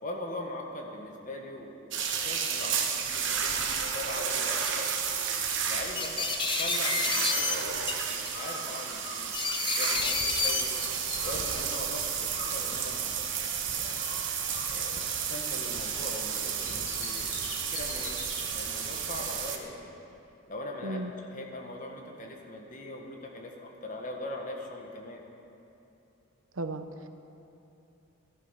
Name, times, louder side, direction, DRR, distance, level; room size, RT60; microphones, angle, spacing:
voice 1, 0.0-4.9 5.6-10.8 11.2-13.1 13.7-14.1 14.7-15.0 15.3-18.2 18.5-20.0 20.5-21.0 21.3-25.2, left 1 dB, 40° left, 1 dB, 1.7 m, -41 dB
sound 1, 1.9-19.6, right 7 dB, 65° right, 1.2 m, -32 dB
sound 2, 2.4-2.5 3.1-3.7 4.5-4.7 5.0-5.3 5.9-7.5 7.9-8.5 9.3-10.6 11.2-11.6, left 4 dB, 25° left, 0.9 m, -30 dB
Bird, 8.3-9.9 10.1-13.6 13.9-16.0 16.3-18.4, left 3 dB, 80° left, 2.7 m, -44 dB
voice 2, 26.6-27.1, right 2 dB, 85° right, 8 dB, 0.9 m, -35 dB
15.0 x 12.0 x 5.9 m, 2.8 s
head